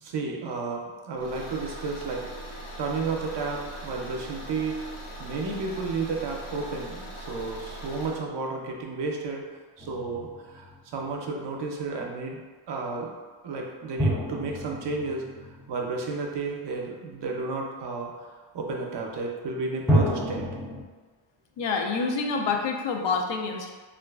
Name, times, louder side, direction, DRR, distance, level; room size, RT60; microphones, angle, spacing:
voice 1, 0.0-2.2 2.8-4.8 5.2-9.4 9.8-12.4 12.7-13.1 13.4-15.2 15.7-18.3 18.5-20.5, right 3 dB, 60° right, 0 dB, 0.6 m, -32 dB
Car / Engine, 1.2-8.2, right 1 dB, 90° left, 1.0 m, -40 dB
sound 1, 9.8-11.1 14.0-16.6 19.9-20.8, equal, 5° right, 0.4 m, -29 dB
voice 2, 21.6-23.7, left 4 dB, 65° left, 2 dB, 0.5 m, -27 dB
3.0 x 2.4 x 2.3 m, 1.4 s
cardioid pair, 95°, 49 cm